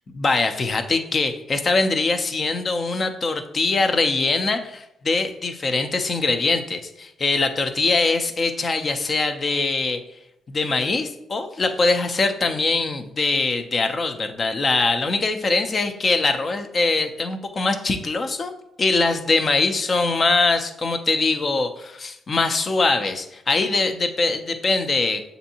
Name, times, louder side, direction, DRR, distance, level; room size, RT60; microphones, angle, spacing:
voice 1, 0.2-10.0 10.5-18.5 18.8-25.2, left 3 dB, 40° left, 7 dB, 0.5 m, -22 dB
6.7 x 2.6 x 2.8 m, 0.82 s
cardioid pair, 90°, 0 cm